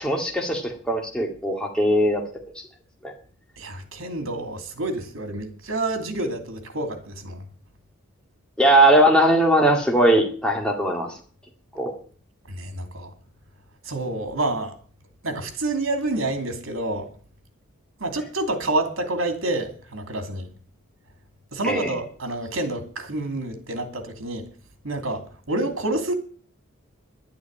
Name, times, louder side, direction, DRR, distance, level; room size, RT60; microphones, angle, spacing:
voice 1, 0.0-2.2 3.0-3.1 8.6-11.2 11.7-11.9 21.7-22.0, right 1 dB, 5° left, 2.2 m, -19 dB
voice 2, 3.6-7.4 12.5-13.1 13.8-14.7 15.2-17.1 18.0-20.5 21.5-24.5 24.8-26.1, right 2 dB, 75° right, 2.7 m, -28 dB
11.5 x 8.7 x 8.8 m
head